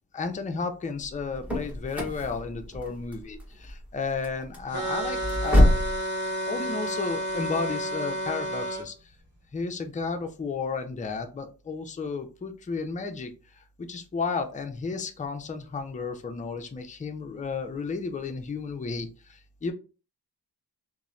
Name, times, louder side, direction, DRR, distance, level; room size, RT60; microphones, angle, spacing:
voice 1, 0.1-5.7 6.5-9.1 9.5-19.7, left 4 dB, 20° left, 6 dB, 0.4 m, -33 dB
sound 1, 1.0-6.0, left 1 dB, 5° right, 0.8 m, -26 dB
sound 2, 4.7-8.8, right 1 dB, 45° right, 1.3 m, -31 dB
2.9 x 2.1 x 2.4 m, 0.34 s
wide cardioid pair, 75°, 41 cm